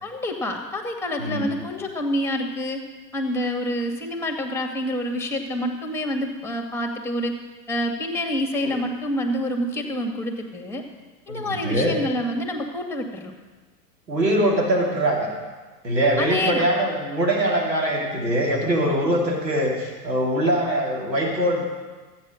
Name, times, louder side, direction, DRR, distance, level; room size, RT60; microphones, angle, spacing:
voice 1, 0.0-2.8 3.1-7.3 7.7-10.8 11.3-13.3 16.2-16.7, left 1 dB, 5° left, 3 dB, 2.2 m, -27 dB
voice 2, 11.3-12.0 14.1-15.3 15.8-21.7, right 1 dB, 90° right, -2 dB, 2.8 m, -22 dB
14.5 x 9.3 x 6.5 m, 1.3 s
figure-of-eight pair, 90°, 49 cm